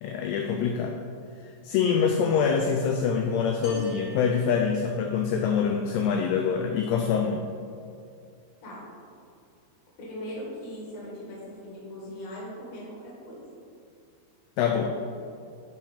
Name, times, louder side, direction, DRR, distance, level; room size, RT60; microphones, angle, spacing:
voice 1, 0.0-1.0 1.6-7.5 14.6-14.9, left 6 dB, 85° left, 3 dB, 2.4 m, -25 dB
sound 1, 3.6-5.4, equal, 65° left, 1.5 m, -45 dB
voice 2, 10.0-13.4, equal, 50° left, -5 dB, 2.4 m, -39 dB
8.3 x 4.7 x 5.0 m, 2.4 s
omnidirectional pair, 4.9 m